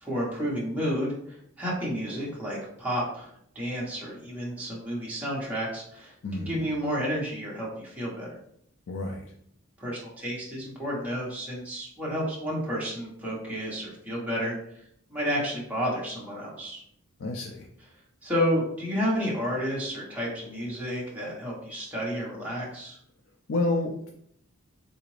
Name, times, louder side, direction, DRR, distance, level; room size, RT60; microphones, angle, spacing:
voice 1, 0.0-8.3 9.8-14.8 15.1-16.8 18.2-23.0, equal, 5° right, -6 dB, 1.0 m, -31 dB
voice 2, 6.2-6.6 8.9-9.2 17.2-17.7 23.5-24.1, left 2 dB, 70° left, 1 dB, 0.4 m, -29 dB
3.8 x 2.5 x 3.1 m, 0.69 s
head